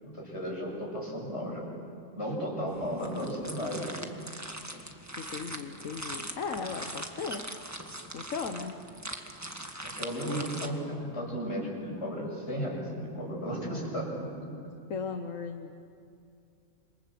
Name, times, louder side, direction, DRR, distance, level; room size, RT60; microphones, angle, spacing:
voice 1, 0.0-1.7 2.2-4.0 9.8-14.7, equal, 55° left, -2 dB, 7.4 m, -34 dB
sound 1, 2.7-10.7, right 1 dB, 15° right, 1.7 m, -41 dB
voice 2, 4.7-7.4 8.1-8.8 14.9-15.7, left 5 dB, 85° left, 5 dB, 1.5 m, -37 dB
27.5 x 26.5 x 7.7 m, 2.4 s
omnidirectional pair, 1.3 m